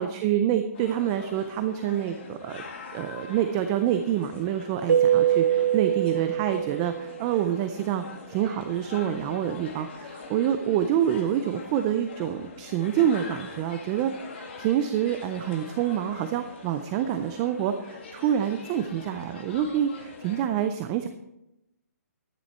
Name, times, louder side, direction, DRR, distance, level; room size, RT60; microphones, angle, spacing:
voice 1, 0.0-2.6 2.9-21.1, right 10 dB, 15° right, 8 dB, 0.3 m, -27 dB
crowd int large wedding reception carpeted hall, 0.7-20.5, left 4 dB, 40° left, 2.0 m, -43 dB
Keyboard (musical), 4.9-7.4, right 10 dB, 80° right, 1.0 m, -23 dB
12.0 x 10.5 x 4.3 m, 0.89 s
hypercardioid pair, 165°, 9 cm